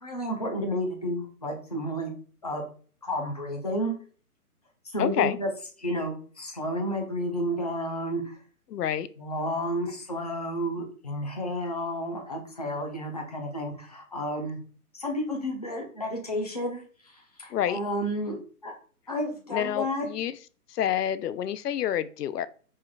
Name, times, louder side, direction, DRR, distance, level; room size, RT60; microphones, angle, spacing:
voice 1, 0.0-2.1 2.4-2.6 3.0-3.9 4.8-5.5 5.8-8.4 9.2-14.6 14.9-18.4 18.6-18.7 19.1-20.1, equal, 25° left, 1 dB, 0.4 m, -31 dB
voice 2, 5.0-5.4 8.7-9.1 17.5-17.8 19.5-20.4 20.7-22.5, left 10 dB, 85° left, 15 dB, 0.5 m, -28 dB
5.4 x 3.2 x 2.2 m, 0.41 s
hypercardioid pair, 165°, 46 cm